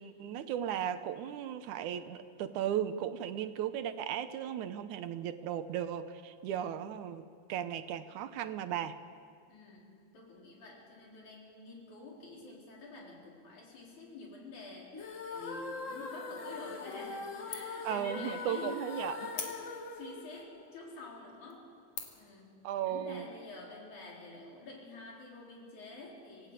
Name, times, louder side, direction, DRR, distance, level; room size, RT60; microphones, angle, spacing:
voice 1, 0.0-9.0 17.8-19.3 22.6-23.3, right 10 dB, 85° right, 11 dB, 2.4 m, -36 dB
voice 2, 9.5-21.7 22.1-26.5, left 2 dB, 85° left, -2 dB, 5.6 m, -48 dB
sound 1, 14.9-21.1, left 4 dB, 45° left, 1.0 m, -42 dB
sound 2, 16.9-17.3 17.5-17.9 18.3-18.4 19.3-20.0 20.7-20.8 21.3-21.5 21.9-22.4, left 7 dB, 65° left, 3.2 m, -42 dB
27.0 x 18.0 x 8.4 m, 2.3 s
omnidirectional pair, 3.3 m